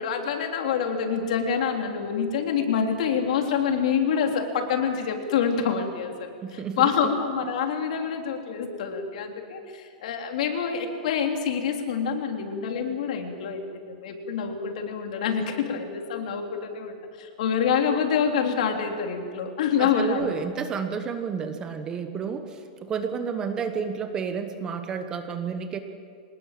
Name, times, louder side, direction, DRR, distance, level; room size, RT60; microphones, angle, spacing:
voice 1, 0.0-20.3, left 7 dB, 60° left, 3 dB, 3.4 m, -26 dB
voice 2, 6.4-6.9 7.4-7.6 19.8-25.8, right 6 dB, 15° right, 8 dB, 1.1 m, -31 dB
25.0 x 20.0 x 7.5 m, 2.1 s
supercardioid pair, 170°, 4 cm